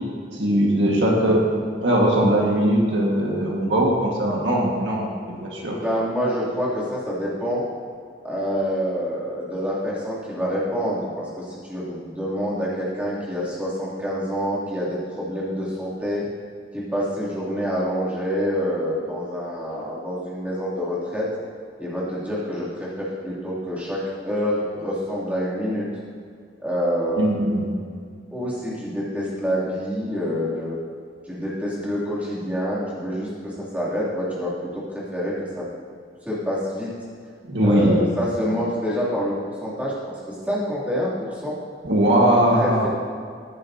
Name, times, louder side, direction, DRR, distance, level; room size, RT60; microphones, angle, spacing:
voice 1, 0.3-1.4 1.8-5.8 27.2-27.7 37.5-38.1 41.8-42.9, right 1 dB, 75° right, -2 dB, 1.7 m, -20 dB
voice 2, 5.7-7.6 8.2-16.2 16.7-21.3 21.8-25.9 26.6-27.6 28.3-30.8 31.3-35.6 36.3-36.9 37.6-41.6 42.3-42.9, equal, 10° right, -8 dB, 2.8 m, -27 dB
14.5 x 10.5 x 2.8 m, 2.1 s
head